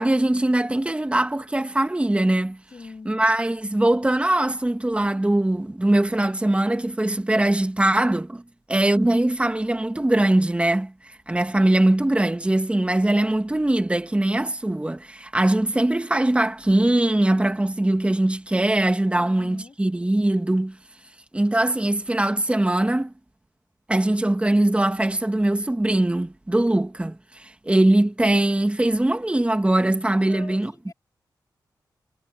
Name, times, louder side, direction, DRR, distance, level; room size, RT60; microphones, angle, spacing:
voice 1, 0.0-2.6 3.1-8.4 8.7-10.9 11.3-20.8 21.3-23.1 23.9-30.9, right 1 dB, 15° right, 1.9 m, -21 dB
voice 2, 2.7-3.1 19.1-19.8 30.2-30.9, left 4 dB, 50° left, 6.9 m, -43 dB
cardioid pair, 70°, 8 cm